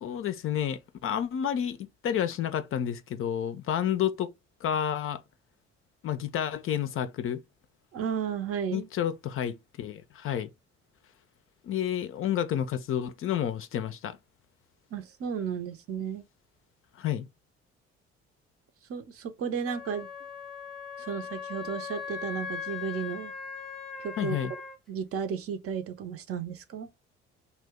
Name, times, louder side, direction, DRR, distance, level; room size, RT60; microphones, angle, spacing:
voice 1, 0.0-4.3 4.6-5.2 6.0-7.4 8.7-10.5 11.6-14.2 17.0-17.3 24.2-24.5, left 10 dB, 40° left, 0.4 m, -30 dB
voice 2, 7.9-8.9 14.9-16.2 18.9-20.1 21.0-23.3 24.0-24.4 24.9-26.9, right 7 dB, 45° right, 0.6 m, -33 dB
Wind instrument woodwind instrument, 19.7-24.8, left 6 dB, ahead, 0.7 m, -39 dB
2.7 x 2.2 x 3.4 m
hypercardioid pair, 50°, 33 cm